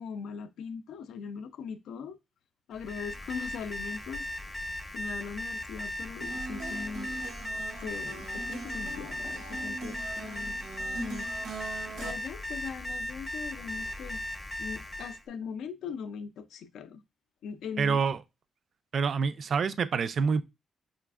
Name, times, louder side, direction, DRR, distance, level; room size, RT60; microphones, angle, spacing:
voice 1, 0.0-2.2 2.7-4.3 4.9-7.1 7.7-10.6 10.9-11.3 12.0-14.2 14.6-17.0 17.4-18.0, left 6 dB, 80° left, 0.3 m, -40 dB
Alarm, 2.7-15.2, left 1 dB, 15° left, 0.6 m, -37 dB
sound 1, 6.2-12.1, right 3 dB, 75° right, 0.7 m, -41 dB
voice 2, 17.8-18.2 18.9-20.4, right 5 dB, 50° right, 0.3 m, -27 dB
4.8 x 2.4 x 2.3 m
cardioid pair, 115°, 0 cm